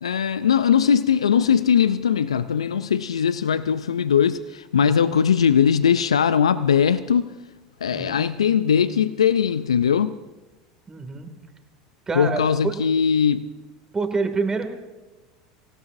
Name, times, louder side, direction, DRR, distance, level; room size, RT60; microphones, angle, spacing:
voice 1, 0.0-7.3 7.8-10.2 12.1-13.5, left 7 dB, 85° left, 0.4 m, -20 dB
voice 2, 4.8-5.1 7.9-8.3 10.9-11.3 12.1-12.8 13.9-14.7, right 4 dB, 20° right, 2.3 m, -27 dB
25.0 x 16.5 x 2.6 m
hypercardioid pair, 80°, 3 cm